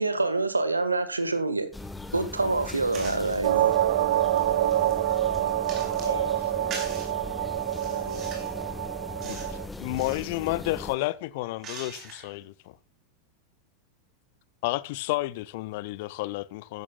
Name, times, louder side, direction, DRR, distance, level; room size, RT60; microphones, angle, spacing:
voice 1, 0.0-1.7 2.1-3.7, right 3 dB, 80° right, 1.5 m, -26 dB
sound 1, 1.7-11.0, left 2 dB, 10° left, 1.3 m, -39 dB
sound 2, 2.9-3.4 4.0-6.2 6.7-7.1 7.6-8.6 9.2-9.6 9.8-10.3 10.9-12.4, right 4 dB, 35° right, 4.8 m, -42 dB
sound 3, 3.4-9.7, right 14 dB, 55° right, 0.5 m, -26 dB
voice 2, 5.9-8.5, left 1 dB, 85° left, 6.0 m, -42 dB
voice 3, 9.2-12.8 14.6-16.8, left 18 dB, 50° left, 0.7 m, -31 dB
14.5 x 12.5 x 2.3 m
figure-of-eight pair, 85°, 0 cm